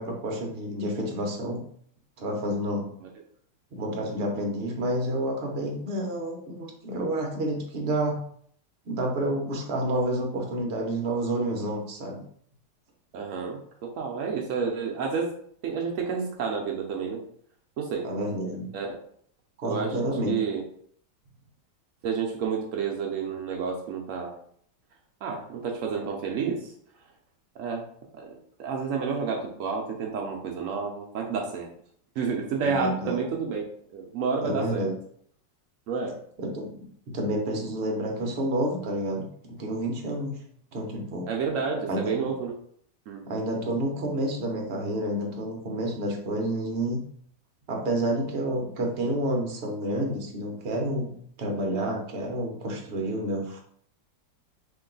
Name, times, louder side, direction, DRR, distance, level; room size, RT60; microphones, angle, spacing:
voice 1, 0.0-1.6 2.2-2.9 3.7-8.2 8.8-12.2 18.0-18.7 19.6-20.3 32.6-33.2 34.4-34.9 36.4-36.7 37.1-40.4 40.7-41.3 41.8-42.2 43.3-47.0 47.7-51.1 51.4-53.6, right 1 dB, 50° right, 0 dB, 0.7 m, -29 dB
voice 2, 13.1-15.3 15.6-17.2 17.8-18.1 18.7-18.9 19.6-20.0 20.3-20.6 22.0-24.3 25.2-26.7 27.6-27.8 28.1-31.7 32.2-34.9 35.9-36.2 41.3-42.5 43.1-43.2, right 5 dB, 90° right, 1 dB, 0.6 m, -30 dB
3.0 x 2.9 x 3.8 m, 0.62 s
omnidirectional pair, 2.0 m